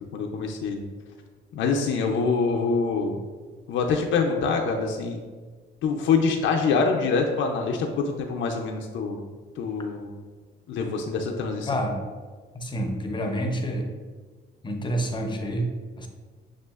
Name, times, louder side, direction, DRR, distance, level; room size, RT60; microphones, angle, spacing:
voice 1, 0.1-0.8 1.5-3.2 3.7-5.2 5.8-9.2 9.6-10.1 10.7-11.7, left 4 dB, 75° left, 1 dB, 0.5 m, -25 dB
voice 2, 11.7-12.0 12.5-13.9 14.6-16.1, equal, 25° left, 3 dB, 0.6 m, -28 dB
6.6 x 2.4 x 2.3 m, 1.4 s
cardioid pair, 90°, 20 cm